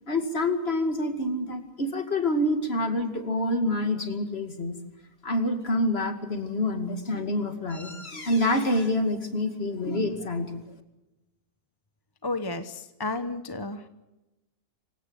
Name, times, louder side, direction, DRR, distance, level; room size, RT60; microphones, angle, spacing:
voice 1, 0.1-4.8 5.2-10.6, left 1 dB, 40° left, 7 dB, 2.5 m, -27 dB
voice 2, 12.2-13.9, left 2 dB, 20° left, 10 dB, 0.9 m, -32 dB
25.5 x 17.0 x 8.1 m, 1.0 s
omnidirectional pair, 1.6 m